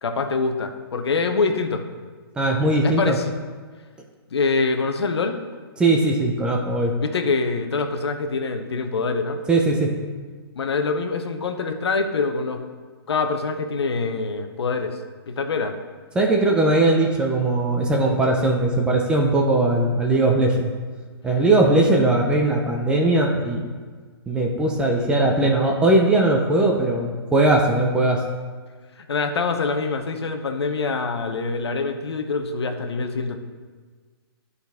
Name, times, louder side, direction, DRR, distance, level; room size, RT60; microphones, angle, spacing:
voice 1, 0.0-1.8 2.8-3.3 4.3-5.3 7.0-9.4 10.6-12.6 13.1-15.0 15.3-15.7 29.1-33.4, left 4 dB, 80° left, 6 dB, 0.9 m, -25 dB
voice 2, 2.4-3.2 5.8-6.9 9.5-9.9 16.1-20.7 21.2-23.6 24.3-28.2, right 2 dB, 5° right, 0 dB, 0.6 m, -19 dB
11.0 x 4.0 x 3.5 m, 1.5 s
hypercardioid pair, 155°, 13 cm